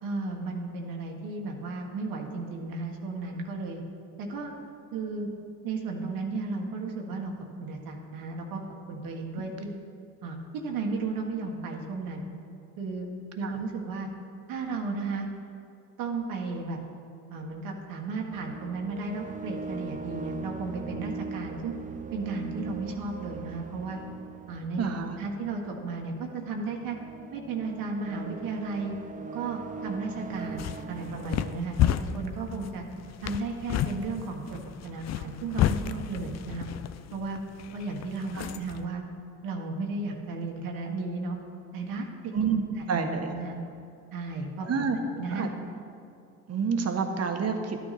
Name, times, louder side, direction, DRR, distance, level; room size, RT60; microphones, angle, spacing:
voice 1, 0.0-3.8 4.2-4.5 4.9-5.3 5.6-7.3 7.6-8.6 8.9-9.7 10.2-12.3 12.8-13.1 13.4-14.1 14.5-15.3 16.0-16.8 17.3-21.7 22.1-24.0 24.5-24.8 25.2-27.0 27.3-28.9 29.3-32.8 33.2-36.7 37.1-37.4 37.7-39.0 39.4-41.4 41.7-42.3 42.8-43.6 44.1-44.9 45.1-45.5, right 3 dB, 70° right, 1 dB, 1.5 m, -34 dB
sound 1, 18.3-31.6, right 4 dB, 20° right, 0.5 m, -41 dB
voice 2, 24.8-25.2 38.3-38.5 42.3-43.3 44.6-45.0 45.3-45.5 46.5-47.8, right 5 dB, 45° right, 5 dB, 1.4 m, -28 dB
sound 2, 30.3-38.9, left 10 dB, 50° left, 0.5 m, -32 dB
12.0 x 9.4 x 4.2 m, 2.5 s
supercardioid pair, 75°, 35 cm